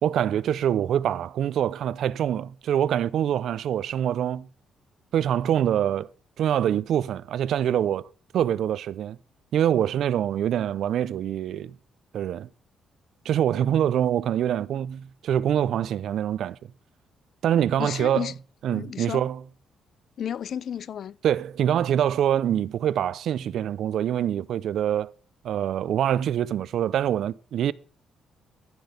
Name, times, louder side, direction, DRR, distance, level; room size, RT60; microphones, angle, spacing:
voice 1, 0.0-4.5 5.1-6.1 6.4-8.1 8.3-9.2 9.5-11.7 12.1-12.5 13.2-16.6 17.4-18.3 18.6-19.4 21.2-25.1 25.4-27.7, right 10 dB, 70° right, 0.6 m, -25 dB
voice 2, 17.8-18.3 18.7-19.3 20.2-21.2, left 9 dB, 60° left, 0.5 m, -32 dB
14.5 x 6.2 x 5.1 m
cardioid pair, 90°, 0 cm